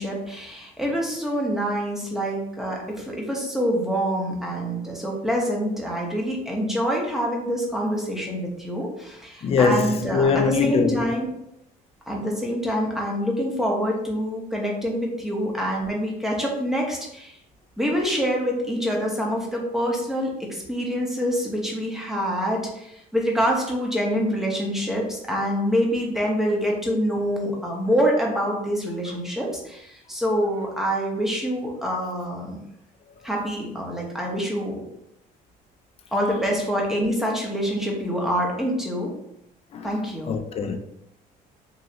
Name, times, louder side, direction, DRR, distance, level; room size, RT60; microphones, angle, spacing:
voice 1, 0.0-11.3 12.1-17.4 17.8-32.6 33.2-34.8 36.1-39.1 39.8-40.3, equal, ahead, 0.8 m, -26 dB
voice 2, 9.4-11.1 39.7-39.9 40.3-40.8, left 5 dB, 35° left, 0.4 m, -22 dB
3.1 x 2.7 x 2.7 m
cardioid pair, 110°, 17 cm